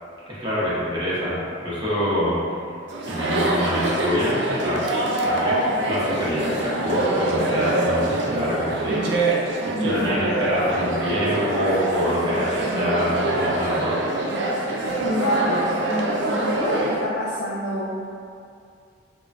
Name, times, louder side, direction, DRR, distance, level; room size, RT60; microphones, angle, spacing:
voice 1, 0.3-2.4 3.1-4.8 5.2-5.6 5.9-9.1 9.8-14.0, equal, 25° right, -10 dB, 0.7 m, -26 dB
Chatter, 2.9-17.0, right 2 dB, 65° right, 0.3 m, -24 dB
voice 2, 9.7-10.2 15.0-15.6 15.9-18.1, left 1 dB, 80° left, -8 dB, 0.4 m, -26 dB
2.9 x 2.2 x 2.4 m, 2.4 s
head